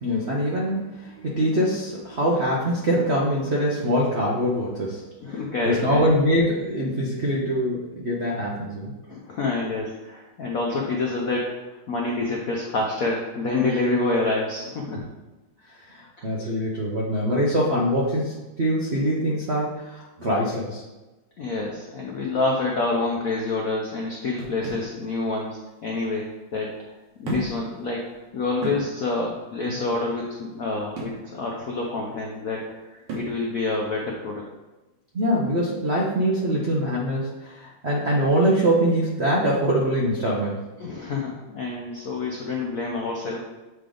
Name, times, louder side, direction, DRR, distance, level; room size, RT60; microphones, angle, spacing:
voice 1, 0.0-5.0 5.6-8.9 15.7-20.8 29.7-29.8 35.1-40.6, equal, 65° right, -4 dB, 0.6 m, -23 dB
voice 2, 5.2-6.1 9.1-15.0 16.2-16.3 21.4-26.3 26.5-26.7 27.2-28.0 28.3-34.4 40.8-43.4, left 3 dB, 70° left, -1 dB, 0.8 m, -27 dB
sound 1, 24.4-24.9 26.0-26.1 27.2-27.7 28.1-28.2 28.6-28.9 31.0-31.2 33.1-33.4, right 2 dB, 85° right, 2.2 m, -32 dB
7.8 x 3.4 x 3.8 m, 1.1 s
omnidirectional pair, 2.3 m